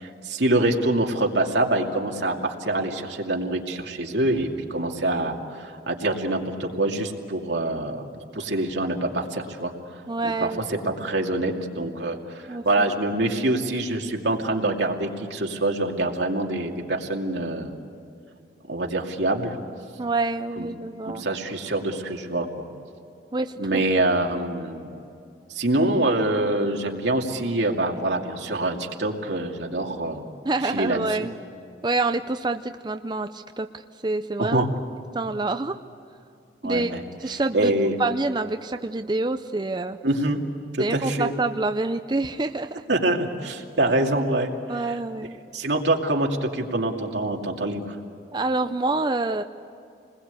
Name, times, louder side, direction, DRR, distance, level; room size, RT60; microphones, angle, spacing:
voice 1, 0.0-8.1 8.3-9.7 10.2-17.7 18.7-19.5 20.6-20.7 21.0-22.6 23.6-24.9 25.5-30.3 30.6-31.0 34.4-34.7 36.6-37.0 37.5-38.0 40.0-40.4 40.7-41.3 42.9-44.5 44.9-45.0 45.5-48.0, right 2 dB, 85° right, 1 dB, 2.5 m, -25 dB
voice 2, 10.1-10.8 12.5-12.6 20.0-21.2 23.3-23.8 30.5-31.4 31.8-33.7 34.0-34.6 35.1-35.8 36.6-36.9 37.2-40.0 40.8-42.8 44.7-45.3 48.3-49.4, right 3 dB, 25° right, 7 dB, 0.6 m, -27 dB
28.5 x 21.0 x 8.3 m, 2.6 s
head